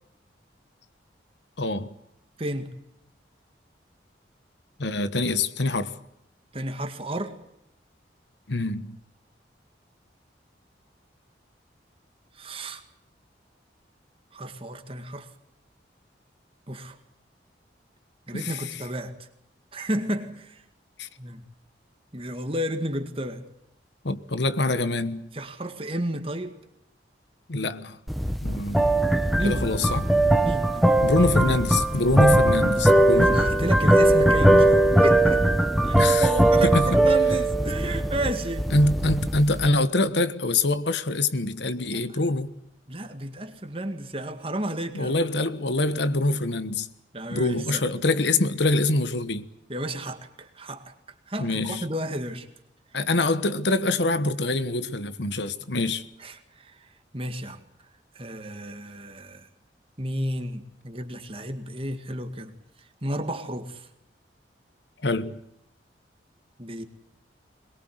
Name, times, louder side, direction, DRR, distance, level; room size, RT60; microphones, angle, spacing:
voice 1, 1.6-1.9 4.8-6.0 8.5-9.0 18.3-18.6 21.0-21.1 24.0-25.3 27.5-28.0 28.4-28.9 29.4-30.1 31.0-33.4 36.0-36.3 36.6-37.0 38.7-42.5 44.9-46.9 47.3-49.5 51.4-51.8 52.9-56.1 65.0-65.4, left 2 dB, 75° left, 1.3 m, -25 dB
voice 2, 2.4-2.7 6.5-7.4 12.3-12.8 14.3-15.3 16.7-17.0 18.3-19.3 19.7-20.6 21.2-21.4 22.1-23.4 25.3-26.6 28.7-28.8 29.3-29.7 30.4-30.9 33.1-35.5 35.8-38.7 42.1-42.2 42.9-45.2 47.1-47.9 49.7-50.9 51.3-52.5 55.6-55.7 56.2-57.6 58.1-59.5 60.0-62.5 62.8-63.9 66.6-66.8, right 1 dB, 30° right, 2.1 m, -32 dB
sound 1, 28.1-39.7, right 1 dB, ahead, 1.2 m, -20 dB
22.0 x 22.0 x 7.9 m
head